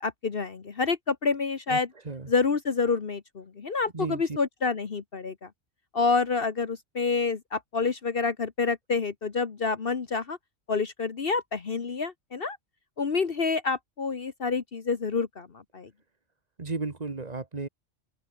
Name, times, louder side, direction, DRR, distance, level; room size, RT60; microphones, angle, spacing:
voice 1, 0.0-1.9 2.3-5.5 5.9-10.4 10.7-12.6 13.0-15.5 15.7-15.9, left 4 dB, 50° left, 1.4 m, -28 dB
voice 2, 3.9-4.4 16.6-17.7, right 3 dB, 35° right, 1.5 m, -34 dB
omnidirectional pair, 1.2 m